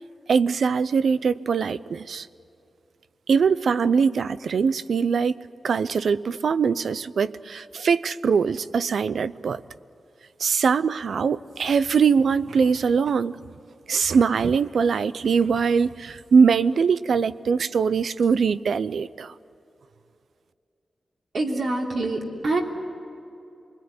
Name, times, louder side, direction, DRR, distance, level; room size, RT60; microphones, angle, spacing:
voice 1, 0.3-2.3 3.3-5.4 5.6-9.6 10.4-13.4 13.9-19.3, right 5 dB, 85° right, 16 dB, 0.6 m, -22 dB
voice 2, 21.3-22.6, right 2 dB, 70° right, 0 dB, 3.4 m, -25 dB
27.0 x 20.5 x 9.6 m, 2.7 s
wide cardioid pair, 155°, 0 cm